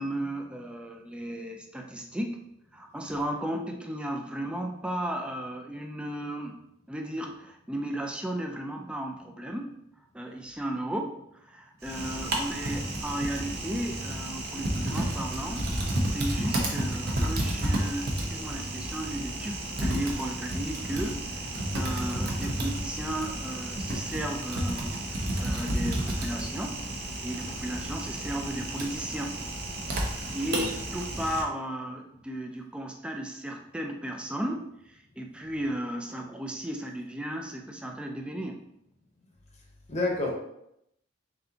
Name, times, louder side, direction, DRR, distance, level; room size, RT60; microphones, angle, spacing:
voice 1, 0.0-2.4 2.7-6.6 6.9-9.8 10.1-15.7 16.1-25.0 25.4-26.9 27.2-29.4 30.3-38.7, right 1 dB, 5° right, 2 dB, 0.4 m, -35 dB
Typing, 11.8-31.4, right 1 dB, 55° right, 0.8 m, -31 dB
voice 2, 30.4-30.7 39.9-40.3, left 2 dB, 35° left, 0 dB, 0.8 m, -29 dB
4.1 x 3.7 x 2.8 m, 0.78 s
head